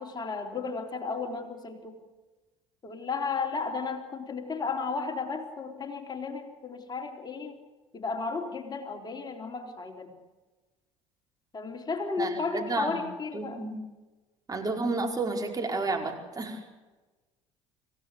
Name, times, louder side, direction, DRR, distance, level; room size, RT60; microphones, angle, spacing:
voice 1, 0.0-2.0 2.8-7.6 7.9-10.1 11.5-13.7, left 4 dB, 25° left, 4 dB, 3.8 m, -34 dB
voice 2, 12.2-13.0 13.3-13.8 14.5-16.6, right 3 dB, 25° right, 3 dB, 5.0 m, -31 dB
26.0 x 16.5 x 8.5 m, 1.2 s
figure-of-eight pair, 60°, 16 cm